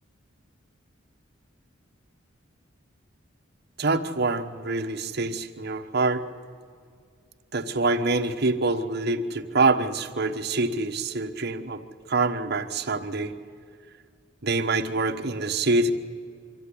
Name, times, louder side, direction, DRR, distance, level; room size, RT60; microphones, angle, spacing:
voice 1, 3.8-6.2 7.5-11.8 12.1-13.3 14.4-15.9, right 3 dB, 55° right, 4 dB, 1.2 m, -25 dB
24.5 x 14.0 x 9.9 m, 2.3 s
head